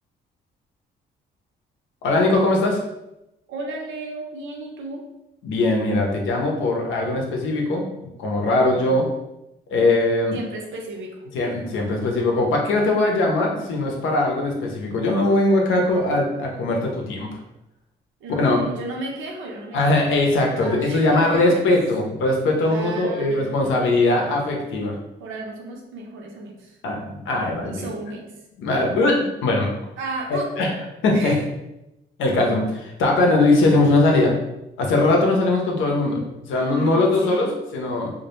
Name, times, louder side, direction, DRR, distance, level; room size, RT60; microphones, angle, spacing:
voice 1, 2.0-2.8 5.4-9.0 9.7-10.3 11.3-17.3 18.3-18.6 19.7-25.0 26.8-27.9 28.6-29.7 30.3-30.7 31.0-31.3 32.2-34.4 34.8-38.1, left 2 dB, 80° left, 1 dB, 0.6 m, -20 dB
voice 2, 3.5-5.0 8.7-9.0 10.3-11.3 18.2-20.1 20.6-21.6 22.6-24.3 25.2-26.8 27.6-28.3 30.0-30.5 31.1-31.4 36.6-37.5, right 2 dB, 75° right, 0 dB, 0.6 m, -34 dB
2.2 x 2.1 x 2.9 m, 0.90 s
cardioid pair, 90°, 20 cm